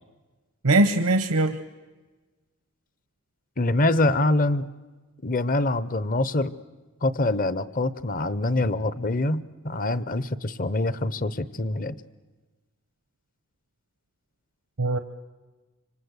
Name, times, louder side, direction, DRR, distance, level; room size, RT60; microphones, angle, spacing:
voice 1, 0.6-1.6 14.8-15.0, right 2 dB, 85° right, 8 dB, 1.0 m, -21 dB
voice 2, 3.6-4.7 5.2-6.5 7.0-12.0, left 2 dB, 40° left, 16 dB, 0.8 m, -25 dB
26.0 x 25.0 x 8.2 m, 1.3 s
head